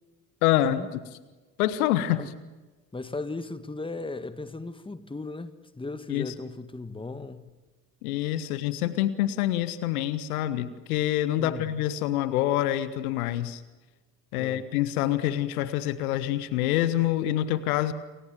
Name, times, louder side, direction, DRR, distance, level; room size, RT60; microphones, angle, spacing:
voice 1, 0.4-0.8 1.6-2.2 6.1-6.3 8.0-13.6 14.3-17.9, left 13 dB, 70° left, 1.3 m, -26 dB
voice 2, 2.9-7.4 11.4-11.8 14.4-14.6, left 3 dB, 10° left, 1.7 m, -37 dB
28.5 x 25.0 x 7.6 m
figure-of-eight pair, 50°, 45 cm